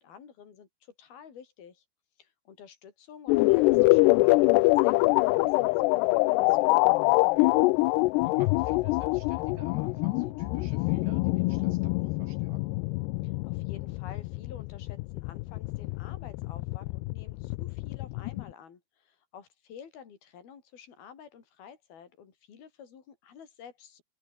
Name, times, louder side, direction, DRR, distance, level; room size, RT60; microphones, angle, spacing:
voice 1, 0.0-1.8 2.2-6.9 13.2-24.0, left 7 dB, 65° left, 5.8 m, -50 dB
sound 1, 3.3-18.5, left 23 dB, 85° left, 2.7 m, -25 dB
voice 2, 7.3-12.8, right 7 dB, 70° right, 5.5 m, -54 dB
omnidirectional pair, 4.7 m